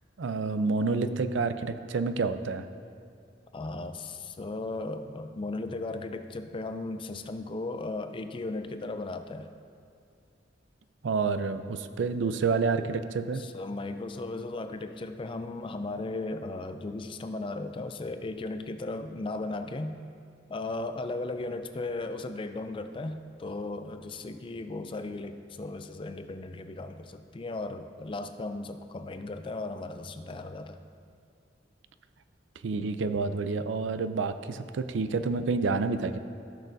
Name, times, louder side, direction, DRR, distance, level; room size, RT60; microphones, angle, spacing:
voice 1, 0.2-2.6 11.0-13.4 32.6-36.2, right 4 dB, 80° right, 10 dB, 0.4 m, -29 dB
voice 2, 3.5-9.5 13.3-20.0 20.5-30.8, left 2 dB, 30° left, 8 dB, 0.4 m, -36 dB
15.5 x 6.4 x 2.6 m, 2.4 s
head